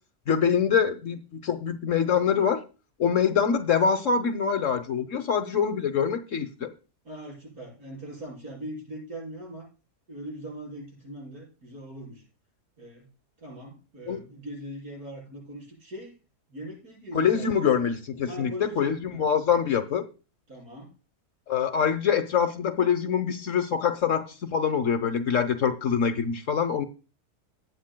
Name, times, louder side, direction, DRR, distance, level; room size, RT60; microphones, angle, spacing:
voice 1, 0.3-2.6 3.0-6.7 14.1-14.2 17.1-20.1 21.5-26.8, left 7 dB, 55° left, 10 dB, 1.1 m, -25 dB
voice 2, 7.0-9.7 10.1-12.2 12.8-13.1 13.4-16.2 16.5-17.7 18.3-19.3 20.5-20.9, equal, 70° right, -3 dB, 7.6 m, -41 dB
19.5 x 9.0 x 2.2 m, 0.33 s
omnidirectional pair, 1.7 m